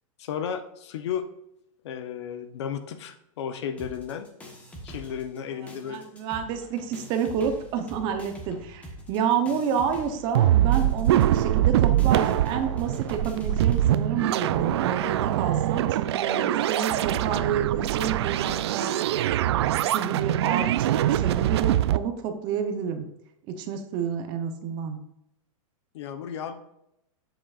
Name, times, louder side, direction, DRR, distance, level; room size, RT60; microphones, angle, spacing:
voice 1, 0.2-1.3 1.8-4.3 4.8-6.1 25.9-26.5, left 8 dB, 50° left, 9 dB, 0.9 m, -33 dB
sound 1, 3.8-5.4 5.7-13.9, equal, 10° left, 1.1 m, -43 dB
voice 2, 5.8-19.1 19.8-23.1 23.5-25.0, right 7 dB, 25° right, 7 dB, 0.8 m, -29 dB
sound 2, 10.3-22.0, right 12 dB, 50° right, 0.4 m, -23 dB
11.0 x 7.9 x 2.5 m, 0.81 s
supercardioid pair, 165°, 18 cm